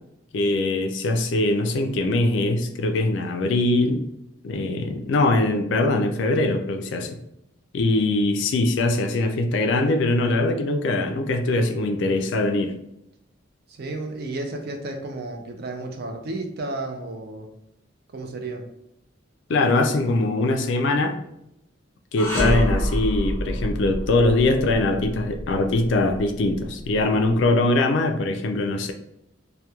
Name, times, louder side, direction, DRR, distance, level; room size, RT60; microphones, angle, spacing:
voice 1, 0.3-4.0 4.4-7.1 7.7-12.7 19.5-21.2 22.1-28.9, left 2 dB, 60° left, 6 dB, 0.3 m, -22 dB
voice 2, 13.7-17.5 18.1-18.6, right 2 dB, 50° right, 4 dB, 0.4 m, -32 dB
sound 1, 22.2-27.4, equal, 10° left, 0.7 m, -27 dB
2.9 x 2.1 x 2.2 m, 0.82 s
head